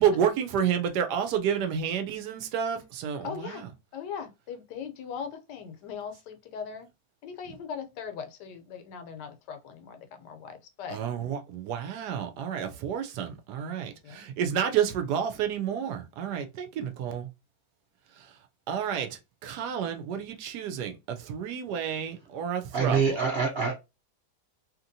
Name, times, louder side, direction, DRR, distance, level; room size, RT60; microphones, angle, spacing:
voice 1, 0.0-3.7 10.9-17.3 18.7-23.2, right 8 dB, 75° right, 1.1 m, -30 dB
voice 2, 3.2-3.6 3.9-6.9 7.2-11.0 14.0-14.3 16.8-16.9, left 6 dB, 80° left, 1.2 m, -39 dB
voice 3, 22.5-23.7, right 5 dB, 55° right, 0.7 m, -26 dB
2.9 x 2.8 x 2.6 m
omnidirectional pair, 1.8 m